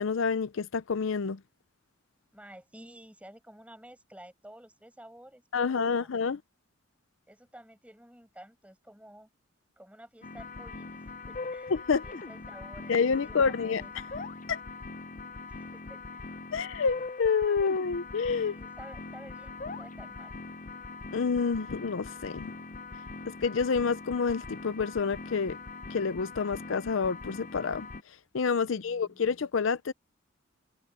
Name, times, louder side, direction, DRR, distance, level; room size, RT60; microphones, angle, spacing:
voice 1, 0.0-1.4 5.5-6.4 11.7-12.0 12.9-13.8 14.5-14.6 16.5-18.6 21.1-22.5 23.3-25.6 25.9-29.9, left 5 dB, 80° left, 0.6 m, -28 dB
voice 2, 2.3-6.1 7.3-9.3 9.8-13.9 15.5-16.2 18.4-20.4 28.6-29.2, right 1 dB, 5° right, 6.6 m, -52 dB
sound 1, 10.2-28.0, left 3 dB, 40° left, 0.7 m, -42 dB
head